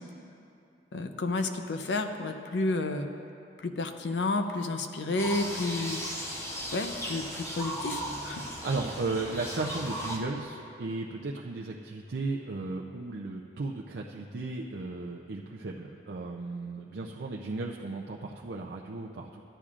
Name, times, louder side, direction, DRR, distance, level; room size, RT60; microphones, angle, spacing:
voice 1, 0.9-3.1 3.6-6.0 6.7-8.4, left 2 dB, 85° left, 6 dB, 0.6 m, -31 dB
sound 1, 5.2-10.2, equal, 15° left, 0.8 m, -36 dB
voice 2, 8.6-19.4, right 3 dB, 80° right, -1 dB, 0.5 m, -35 dB
13.5 x 10.0 x 2.5 m, 2.6 s
head